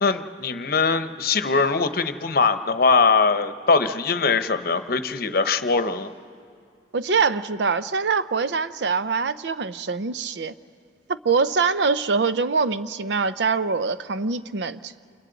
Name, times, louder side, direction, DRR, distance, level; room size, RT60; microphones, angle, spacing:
voice 1, 0.0-6.1, left 4 dB, 55° left, 10 dB, 0.9 m, -21 dB
voice 2, 6.9-10.5 11.1-14.9, right 4 dB, 75° right, 13 dB, 0.6 m, -24 dB
29.0 x 27.5 x 4.0 m, 2.4 s
head